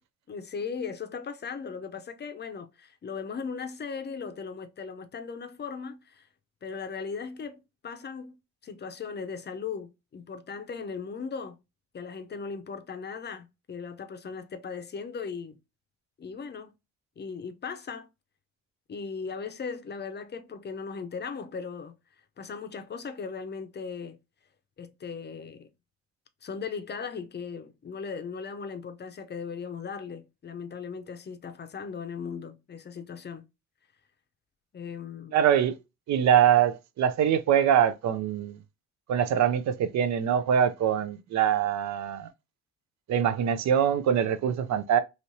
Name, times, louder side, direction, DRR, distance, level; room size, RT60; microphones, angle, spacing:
voice 1, 0.3-6.3 6.6-8.3 8.6-11.6 11.9-15.6 16.2-16.7 17.2-18.1 18.9-21.9 22.4-24.2 24.8-25.7 26.4-33.5 34.7-35.4, left 5 dB, 35° left, 0.6 m, -38 dB
voice 2, 35.3-35.8 36.1-38.6 39.1-42.3 43.1-45.0, right 9 dB, 65° right, 0.5 m, -23 dB
3.1 x 2.8 x 2.6 m
cardioid pair, 90°, 30 cm